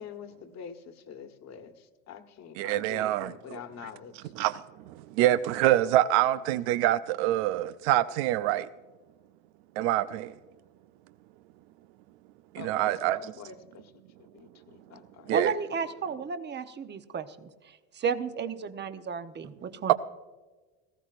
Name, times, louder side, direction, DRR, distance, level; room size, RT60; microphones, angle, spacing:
voice 1, 0.0-1.7 2.1-4.1 12.6-13.8 14.3-15.3, left 7 dB, 50° left, 1.4 m, -45 dB
voice 2, 2.6-8.7 9.8-10.3 12.5-13.3 15.3-15.5 19.9-20.0, right 14 dB, 85° right, 0.5 m, -26 dB
voice 3, 15.3-17.5 17.9-19.9, right 6 dB, 30° right, 0.9 m, -32 dB
18.0 x 15.0 x 2.5 m
supercardioid pair, 95°, 33 cm